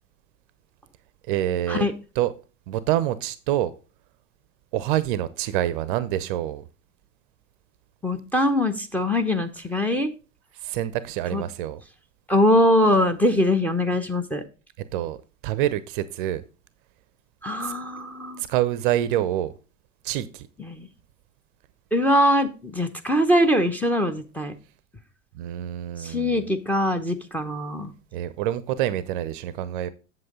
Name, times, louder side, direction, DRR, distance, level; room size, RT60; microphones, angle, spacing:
voice 1, 1.3-1.9 2.2-2.3 2.7-3.7 4.7-6.6 10.6-11.8 14.9-15.2 15.4-16.4 17.6-17.7 18.4-19.5 20.0-20.5 25.4-26.4 28.1-29.9, right 13 dB, 40° right, 0.6 m, -26 dB
voice 2, 8.0-10.1 11.3-11.4 12.3-14.4 17.4-18.4 20.6-20.9 21.9-24.5 26.0-27.9, left 1 dB, 5° left, 0.8 m, -22 dB
7.7 x 7.6 x 3.6 m
figure-of-eight pair, 90°, 40 cm